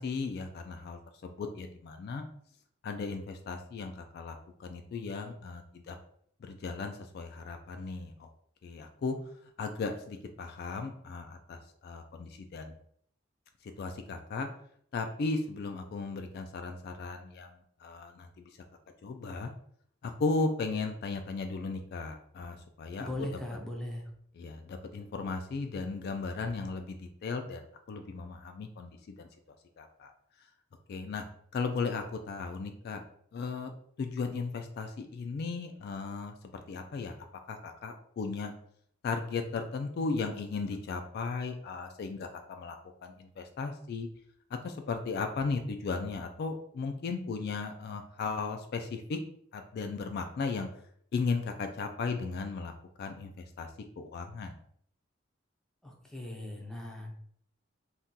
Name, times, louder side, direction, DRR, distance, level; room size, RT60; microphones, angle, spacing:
voice 1, 0.0-2.2 2.8-6.0 6.4-8.3 8.6-9.2 9.6-12.7 13.6-14.5 14.9-18.5 19.0-19.5 20.0-23.3 24.4-29.3 29.8-30.1 30.9-31.2 31.5-33.0 33.3-33.7 34.0-37.1 37.5-38.5 39.0-42.8 43.0-44.1 44.5-49.2 49.5-50.7 51.1-52.7 53.0-53.7 54.0-54.5, left 4 dB, 55° left, 6 dB, 0.3 m, -36 dB
voice 2, 23.0-24.1 55.8-57.1, left 1 dB, 5° left, 0 dB, 0.5 m, -39 dB
2.7 x 2.3 x 3.6 m, 0.64 s
head